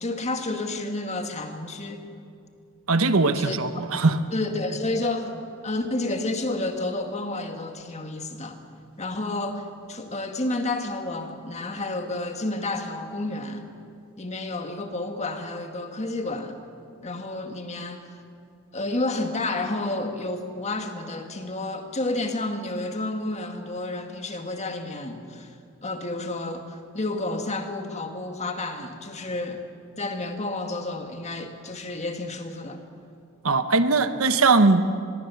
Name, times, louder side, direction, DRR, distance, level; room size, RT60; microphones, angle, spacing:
voice 1, 0.0-2.1 3.4-3.6 4.3-5.3 5.6-8.6 9.0-13.6 14.2-16.6 17.0-18.0 18.7-25.5 25.8-29.7 30.0-32.8, left 2 dB, 30° left, 5 dB, 1.9 m, -30 dB
voice 2, 2.9-4.2 33.4-34.9, right 3 dB, 75° right, 10 dB, 1.1 m, -20 dB
25.0 x 21.5 x 7.1 m, 2.4 s
head